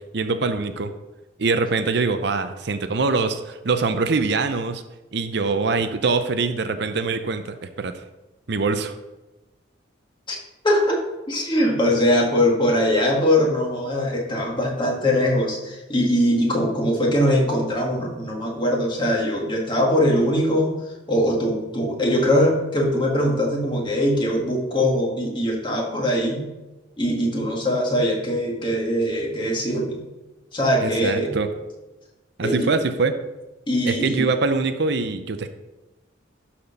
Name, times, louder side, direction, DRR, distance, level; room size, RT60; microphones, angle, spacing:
voice 1, 0.1-0.9 1.4-4.8 5.1-8.0 8.5-8.9 30.8-31.5 32.4-33.2 33.9-35.5, right 4 dB, 60° right, 9 dB, 0.6 m, -23 dB
voice 2, 10.6-26.5 27.0-30.0 30.5-31.3 32.4-32.7 33.7-34.3, equal, 25° left, -1 dB, 1.8 m, -22 dB
12.0 x 4.4 x 5.3 m, 1.1 s
head